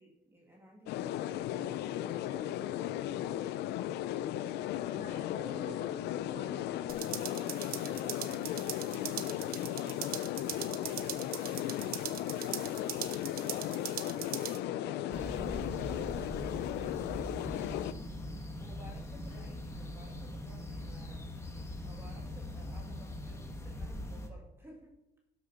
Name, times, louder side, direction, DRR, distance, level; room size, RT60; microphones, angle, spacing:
voice 1, 0.0-1.5 1.9-3.3 7.0-10.0 10.4-14.0 14.7-17.9 18.6-21.3 21.8-25.0, equal, 15° right, -1 dB, 2.4 m, -55 dB
sound 1, 0.9-17.9, left 12 dB, 80° left, 0.5 m, -36 dB
voice 2, 4.8-6.6 19.3-19.6 21.5-21.6, left 2 dB, 55° left, 1 dB, 3.4 m, -47 dB
sound 2, 6.9-14.6, right 10 dB, 65° right, 1.1 m, -41 dB
sound 3, 15.1-24.3, left 1 dB, 15° left, 1.5 m, -41 dB
12.5 x 6.9 x 5.7 m, 0.89 s
cardioid pair, 110°, 17 cm